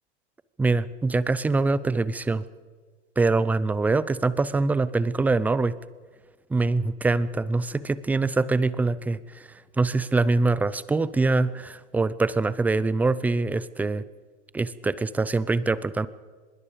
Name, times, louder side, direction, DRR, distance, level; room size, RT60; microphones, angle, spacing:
voice 1, 0.6-2.4 3.2-5.7 6.5-14.0 14.5-16.1, right 3 dB, 5° right, 17 dB, 0.5 m, -24 dB
24.5 x 21.5 x 5.2 m, 1.5 s
hypercardioid pair, 115°, 36 cm